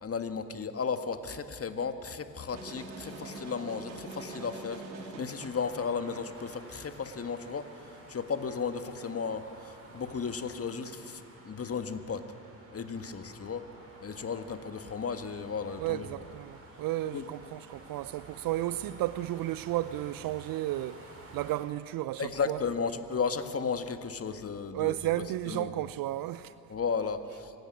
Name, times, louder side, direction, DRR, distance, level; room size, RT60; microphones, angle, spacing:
voice 1, 0.0-4.8 5.2-7.7 8.1-12.2 12.7-13.6 14.0-16.1 17.1-17.2 22.2-24.9 25.5-25.7 26.7-27.5, left 5 dB, 30° left, 1.7 m, -34 dB
sound 1, 2.5-5.7, right 2 dB, 85° right, 2.1 m, -43 dB
sound 2, 5.2-21.6, right 2 dB, 30° right, 6.9 m, -52 dB
voice 2, 15.8-21.1 21.3-22.6 24.7-26.5, right 15 dB, 45° right, 0.6 m, -33 dB
25.5 x 13.5 x 9.9 m
figure-of-eight pair, 55°, 50 cm